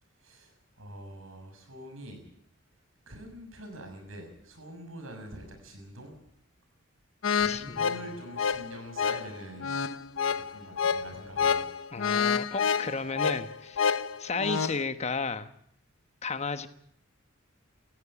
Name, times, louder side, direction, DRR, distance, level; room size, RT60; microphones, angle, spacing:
voice 1, 0.2-2.2 3.1-6.2 7.3-9.7 10.3-11.7, right 1 dB, 85° right, 4 dB, 6.5 m, -45 dB
sound 1, 7.2-14.8, left 6 dB, 85° left, 0.8 m, -29 dB
voice 2, 7.5-8.0 11.9-13.8 14.2-15.5 16.2-16.7, left 4 dB, 35° left, 11 dB, 1.1 m, -33 dB
17.5 x 15.0 x 9.9 m, 0.69 s
head